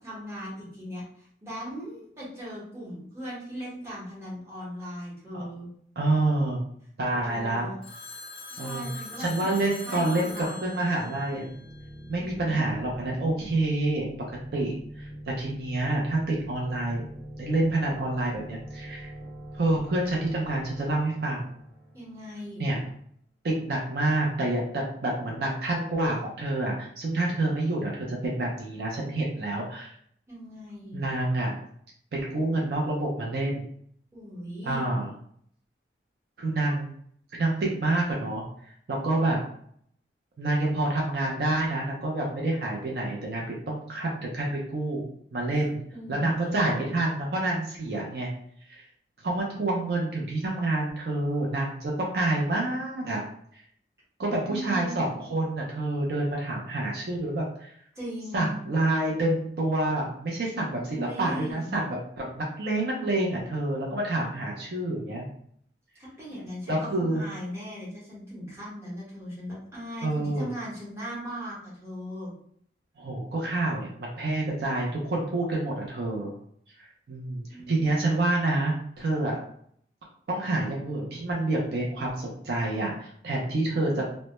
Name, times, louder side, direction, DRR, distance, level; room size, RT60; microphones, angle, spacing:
voice 1, 0.0-5.7 7.1-7.8 8.5-9.5 9.8-11.0 12.1-12.6 21.9-22.7 30.3-31.0 34.1-34.9 45.5-45.7 45.9-46.7 54.5-55.2 57.9-58.6 60.7-61.8 65.9-72.3 77.5-78.1, equal, 15° right, -7 dB, 0.9 m, -39 dB
voice 2, 6.0-6.6 7.0-7.7 8.6-8.9 9.2-11.5 12.1-14.1 14.5-17.0 17.4-19.1 19.5-21.5 22.6-22.8 23.4-29.9 30.9-31.6 32.1-33.7 34.6-35.1 36.4-36.9 37.4-38.4 38.9-39.4 40.4-45.0 45.3-45.8 46.1-48.3 48.7-48.8 49.2-53.2 53.5-53.6 54.2-57.7 58.3-65.3 66.7-67.2 70.0-70.5 73.0-76.3 77.1-79.4 80.3-84.1, right 2 dB, 60° right, -2 dB, 0.4 m, -28 dB
Telephone, 7.8-12.1, left 3 dB, 30° left, 0.4 m, -43 dB
sound 1, 11.1-22.7, equal, 75° right, 0.9 m, -43 dB
2.1 x 2.1 x 2.9 m, 0.64 s
head